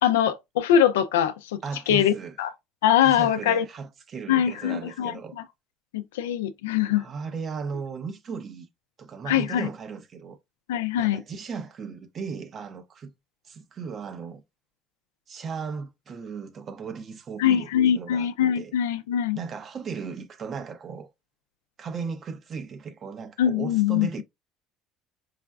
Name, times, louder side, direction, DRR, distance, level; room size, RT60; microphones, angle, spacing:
voice 1, 0.0-1.6 1.9-2.5 2.8-3.6 4.3-5.1 5.9-7.0 9.3-9.7 10.7-11.2 17.4-19.4 23.4-24.2, left 10 dB, 90° left, 0.3 m, -23 dB
voice 2, 1.6-2.4 3.0-5.4 6.9-8.7 9.0-10.4 11.0-13.1 13.4-14.4 15.3-18.3 18.6-18.7 19.3-21.1 21.8-24.2, right 5 dB, 45° right, 0.7 m, -36 dB
4.8 x 2.2 x 2.3 m
supercardioid pair, 80°, 0 cm